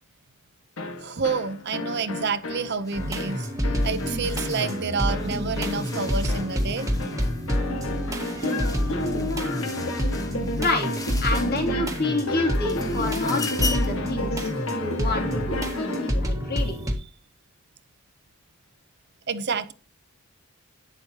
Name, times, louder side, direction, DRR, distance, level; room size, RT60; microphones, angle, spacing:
sound 1, 0.8-16.2, left 2 dB, 65° left, 1.7 m, -32 dB
voice 1, 1.0-3.5 3.8-6.9 19.3-19.7, right 5 dB, 50° right, 0.7 m, -28 dB
sound 2, 2.9-3.0 3.3-12.0 12.4-14.1, left 3 dB, 15° left, 1.3 m, -39 dB
sound 3, 2.9-16.9, equal, 15° right, 1.6 m, -28 dB
voice 2, 10.5-10.9 11.2-15.6 16.1-16.8, left 2 dB, 45° left, 2.8 m, -28 dB
11.0 x 9.1 x 2.9 m
head